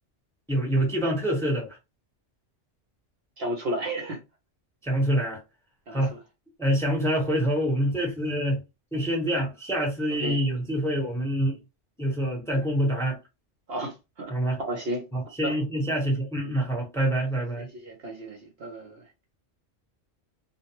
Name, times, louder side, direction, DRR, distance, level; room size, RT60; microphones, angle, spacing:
voice 1, 0.5-1.8 4.8-5.4 5.9-6.1 6.6-8.6 8.9-11.6 12.0-13.2 14.3-14.6 15.1-17.7, right 1 dB, 5° left, 0.9 m, -26 dB
voice 2, 3.4-4.2 5.9-6.2 10.2-10.4 13.7-14.3 14.7-15.0 15.4-15.5 17.6-19.0, right 1 dB, 60° right, 0.8 m, -33 dB
2.5 x 2.1 x 2.9 m
omnidirectional pair, 1.3 m